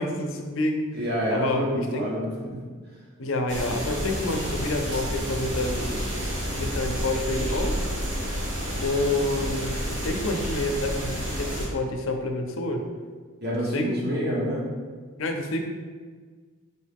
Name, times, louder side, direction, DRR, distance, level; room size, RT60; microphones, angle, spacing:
voice 1, 0.0-0.8 1.3-2.0 3.2-6.0 6.6-7.8 8.8-12.8 13.7-14.0 15.2-15.6, left 2 dB, 80° left, 4 dB, 0.5 m, -28 dB
voice 2, 0.9-2.6 13.4-14.7, equal, 50° right, -5 dB, 1.1 m, -28 dB
sound 1, 3.5-11.7, equal, 70° right, 1.3 m, -30 dB
4.4 x 3.1 x 3.4 m, 1.5 s
head